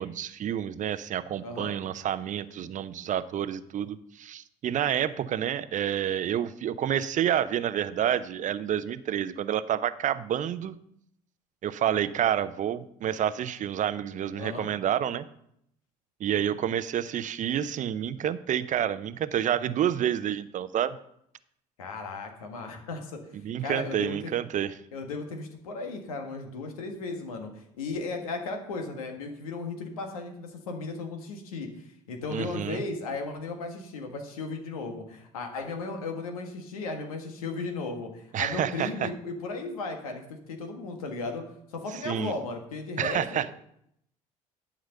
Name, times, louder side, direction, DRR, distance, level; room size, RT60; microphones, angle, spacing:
voice 1, 0.0-10.7 11.6-15.2 16.2-21.0 23.4-24.7 32.3-32.8 38.3-39.1 42.0-42.3 43.0-43.5, right 10 dB, 45° right, 14 dB, 0.7 m, -29 dB
voice 2, 1.4-1.7 14.4-14.7 21.8-23.2 23.6-24.3 24.9-41.4 41.7-43.5, left 3 dB, 80° left, 4 dB, 1.6 m, -36 dB
11.0 x 5.0 x 6.6 m, 0.73 s
hypercardioid pair, 60°, 18 cm